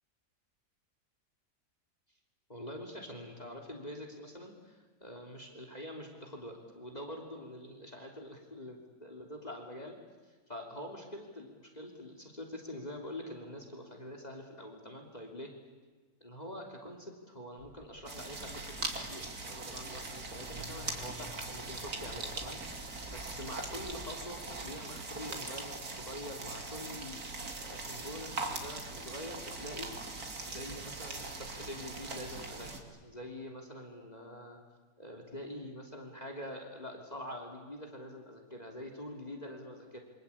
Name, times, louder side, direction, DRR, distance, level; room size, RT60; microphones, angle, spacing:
voice 1, 2.5-10.0 10.3-15.5 16.2-29.9 30.5-34.6 35.0-40.0, left 1 dB, 25° left, 3 dB, 3.5 m, -45 dB
sound 1, 17.6-24.5, right 2 dB, 35° right, 2.9 m, -54 dB
sound 2, 18.1-32.8, right 3 dB, 70° right, 3.2 m, -41 dB
27.0 x 25.0 x 8.7 m, 1.3 s
omnidirectional pair, 1.6 m